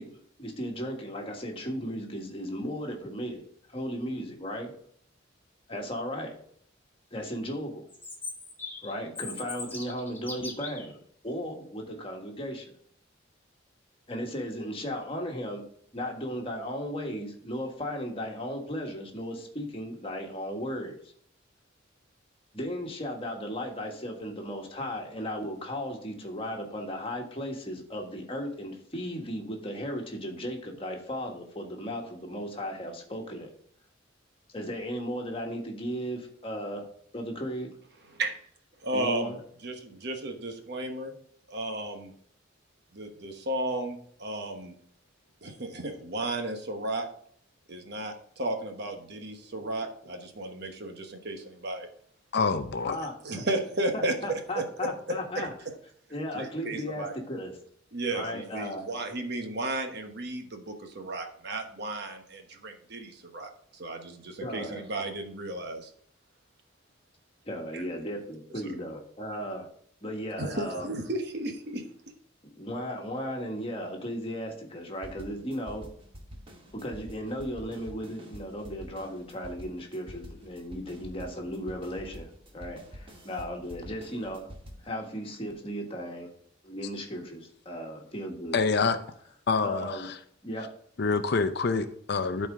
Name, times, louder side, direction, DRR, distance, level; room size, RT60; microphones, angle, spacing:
voice 1, 0.0-3.4 3.7-4.7 5.7-6.3 7.1-7.9 8.8-11.0 11.2-12.7 14.1-15.6 15.9-21.1 22.5-33.5 34.5-36.8 37.1-37.7 38.9-39.4 52.8-53.4 53.9-55.5 56.1-57.5 58.1-58.8 64.4-64.8 67.4-69.7 70.0-70.9 72.5-75.9 76.7-84.5 84.8-86.3 86.6-88.6 89.6-90.1 90.4-90.7, equal, 30° left, 1 dB, 1.5 m, -36 dB
Chirp tweet, 7.9-10.9, left 3 dB, 10° left, 1.3 m, -40 dB
voice 2, 38.8-39.3 39.6-41.2 41.5-42.1 42.9-44.7 45.4-47.1 47.7-51.9 52.5-52.6 52.9-54.1 54.5-55.5 56.3-57.1 57.9-65.9 67.7-67.8 70.4-71.8, right 1 dB, 55° right, 5 dB, 1.2 m, -34 dB
voice 3, 52.3-53.0 88.5-89.0 89.5-90.1 91.0-92.5, left 4 dB, 55° left, 10 dB, 0.5 m, -26 dB
sound 1, 75.0-84.9, equal, 25° right, 1.2 m, -47 dB
12.0 x 4.4 x 3.7 m, 0.62 s
head